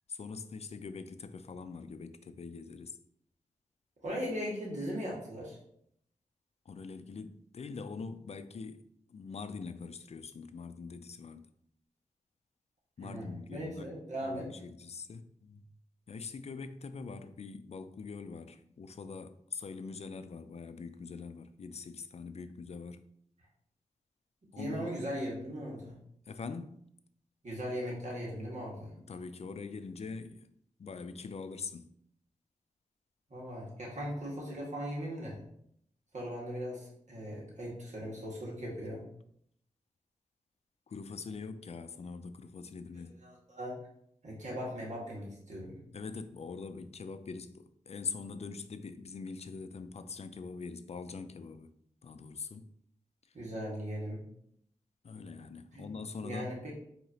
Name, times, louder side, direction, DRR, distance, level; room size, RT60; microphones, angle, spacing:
voice 1, 0.1-3.0 6.7-8.8 9.1-11.5 13.0-13.9 14.2-15.7 16.1-23.0 24.5-24.9 26.3-26.8 29.1-30.5 30.8-31.9 40.9-43.2 45.9-51.7 52.0-52.7 55.0-56.6, left 4 dB, 50° left, 0.4 m, -43 dB
voice 2, 4.0-5.6 13.0-14.5 24.5-25.9 27.4-28.9 33.3-35.4 36.1-39.0 43.2-43.8 44.2-45.7 53.3-54.2 55.7-55.9 56.2-56.7, equal, 60° right, 1.7 m, -38 dB
4.7 x 2.9 x 2.8 m
cardioid pair, 45°, 14 cm